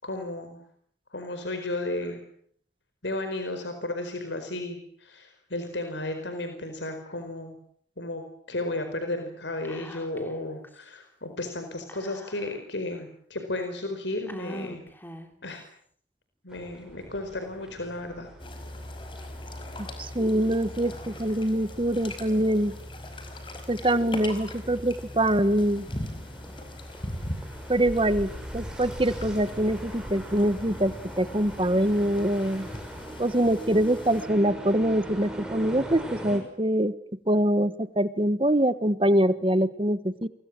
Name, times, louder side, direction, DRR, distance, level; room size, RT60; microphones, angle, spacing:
voice 1, 0.0-0.6 1.1-2.2 3.0-7.6 8.0-8.2 8.5-14.8 15.4-15.6 16.4-18.3, left 2 dB, 85° left, 7 dB, 4.8 m, -33 dB
Whispering, 9.6-10.4 10.6-10.7 11.9-12.7 13.4-13.5 14.3-15.5, equal, 10° left, 3.0 m, -42 dB
sound 1, 16.5-36.4, equal, 5° right, 6.1 m, -42 dB
sound 2, 18.4-34.2, left 1 dB, 30° left, 5.0 m, -40 dB
voice 2, 20.0-22.7 23.7-25.9 27.7-32.7 33.2-36.9 37.3-40.3, right 1 dB, 30° right, 13 dB, 1.1 m, -24 dB
30.0 x 24.0 x 7.6 m, 0.63 s
head